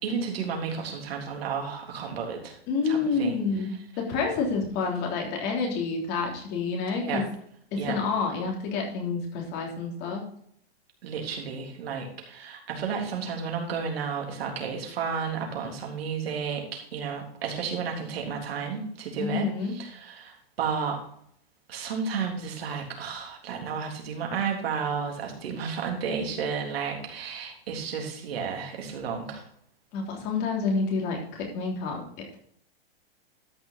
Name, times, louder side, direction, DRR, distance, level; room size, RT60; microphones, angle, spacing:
voice 1, 0.0-2.6 2.8-3.4 7.0-7.2 7.8-8.0 11.0-19.4 19.7-21.0 21.7-29.5, right 6 dB, 75° right, 1 dB, 3.7 m, -32 dB
voice 2, 2.7-7.2 7.7-10.3 19.2-19.8 29.9-32.0, left 4 dB, 30° left, 1 dB, 3.3 m, -28 dB
13.0 x 6.1 x 4.2 m, 0.65 s
hypercardioid pair, 155°, 31 cm